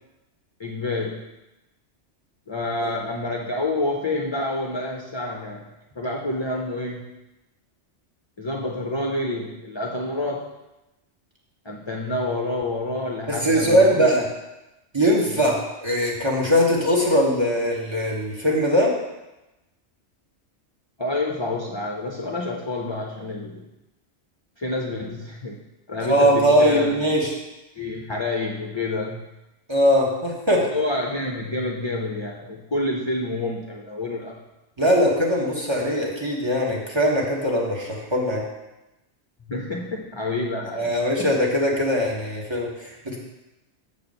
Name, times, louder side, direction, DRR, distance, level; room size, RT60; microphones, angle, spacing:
voice 1, 0.6-1.2 2.5-5.7 6.0-7.1 8.4-10.5 11.6-14.1 15.3-15.4 21.0-23.7 24.6-25.6 25.9-27.1 27.8-29.2 30.7-34.4 39.5-40.9 41.2-41.3, left 2 dB, 30° left, 0 dB, 0.5 m, -28 dB
voice 2, 13.3-14.2 14.9-18.9 26.0-27.4 29.7-30.6 34.8-38.4 40.8-43.2, equal, 25° right, -3 dB, 1.5 m, -21 dB
7.0 x 4.4 x 6.7 m, 0.98 s
omnidirectional pair, 1.2 m